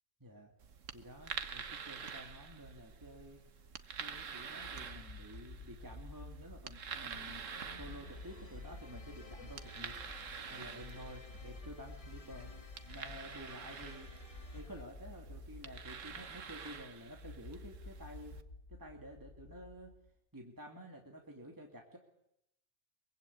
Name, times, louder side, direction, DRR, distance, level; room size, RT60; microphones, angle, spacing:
voice 1, 0.2-0.5 0.9-3.4 4.0-7.4 7.8-9.9 10.2-12.6 12.9-14.1 14.5-18.4 18.7-19.9 20.3-22.0, equal, 15° right, 0 dB, 2.5 m, -51 dB
sound 1, 0.6-18.4, right 6 dB, 80° right, 1.6 m, -48 dB
sound 2, 4.6-20.1, left 2 dB, 75° left, 2.9 m, -53 dB
sound 3, 7.1-14.8, left 4 dB, 30° left, 1.1 m, -53 dB
23.5 x 23.0 x 8.6 m, 0.81 s
omnidirectional pair, 1.3 m